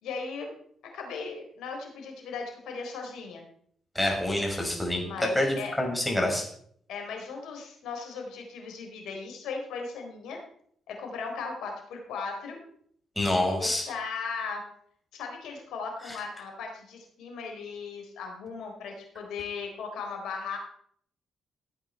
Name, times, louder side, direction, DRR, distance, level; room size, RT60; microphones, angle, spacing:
voice 1, 0.0-0.5 0.9-3.5 5.0-5.8 6.9-10.4 10.9-12.6 13.5-14.6 15.1-20.6, left 5 dB, 80° left, 2 dB, 4.0 m, -37 dB
voice 2, 3.9-5.1 5.3-6.5 13.2-13.9 16.1-16.2, left 1 dB, 5° left, 0 dB, 5.5 m, -27 dB
15.5 x 8.8 x 4.5 m, 0.64 s
supercardioid pair, 60°, 0 cm